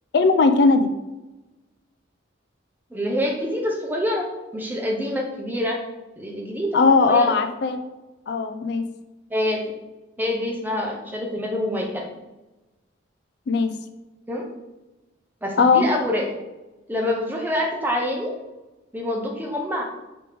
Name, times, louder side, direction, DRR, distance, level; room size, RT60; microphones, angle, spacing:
voice 1, 0.1-0.9 6.7-7.8 8.3-8.9 13.5-13.7 15.6-15.9, left 4 dB, 60° left, 8 dB, 0.3 m, -18 dB
voice 2, 2.9-4.3 4.5-5.8 6.2-6.8 7.0-7.3 9.3-9.6 10.2-12.1 14.3-14.5 15.4-16.2 16.9-18.3 18.9-19.8, left 1 dB, 10° right, 0 dB, 0.6 m, -26 dB
4.9 x 3.0 x 3.4 m, 1.1 s
head